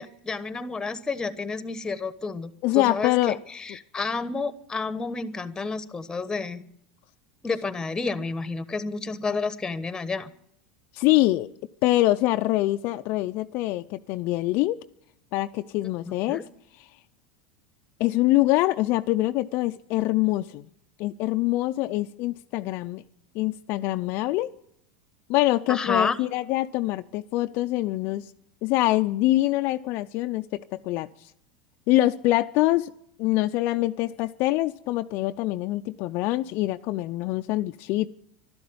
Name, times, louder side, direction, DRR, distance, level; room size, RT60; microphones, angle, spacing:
voice 1, 0.0-6.6 7.4-10.3 16.1-16.4 25.7-26.2, left 4 dB, 15° left, 13 dB, 1.1 m, -30 dB
voice 2, 2.6-3.4 10.9-11.5 11.8-14.8 15.3-16.4 18.0-20.7 21.0-23.0 23.3-24.5 25.3-28.3 28.6-31.1 31.9-32.9 33.2-38.1, left 17 dB, 55° left, 8 dB, 0.5 m, -24 dB
12.5 x 11.5 x 9.4 m, 0.72 s
supercardioid pair, 110°, 4 cm